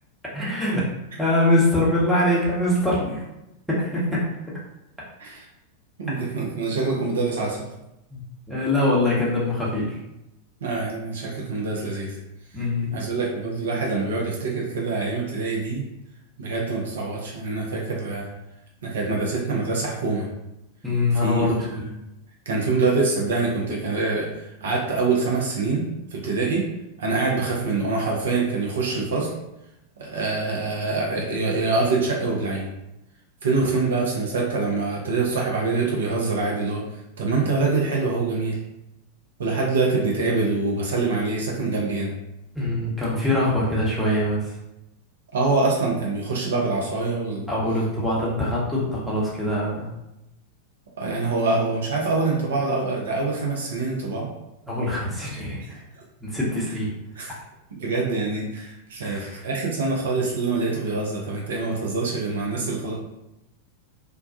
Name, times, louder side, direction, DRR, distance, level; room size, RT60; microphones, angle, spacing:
voice 1, 0.3-0.8 1.2-3.2 3.7-4.2 8.1-8.2 8.5-10.0 12.5-12.9 20.8-21.6 42.5-44.5 47.5-49.9 54.7-55.6 56.2-56.9 59.0-59.4, left 1 dB, ahead, -8 dB, 0.9 m, -23 dB
voice 2, 6.0-7.7 10.6-12.2 12.9-15.8 16.4-18.3 18.8-20.3 21.2-21.9 22.5-24.3 24.6-26.7 27.0-29.3 30.0-32.7 33.4-36.8 37.2-38.6 39.4-42.1 45.3-47.5 51.0-54.3 55.9-56.0 57.2-57.4 57.8-62.9, right 3 dB, 65° right, -2 dB, 0.5 m, -25 dB
2.2 x 2.2 x 2.6 m, 0.89 s
figure-of-eight pair, 90°, 0 cm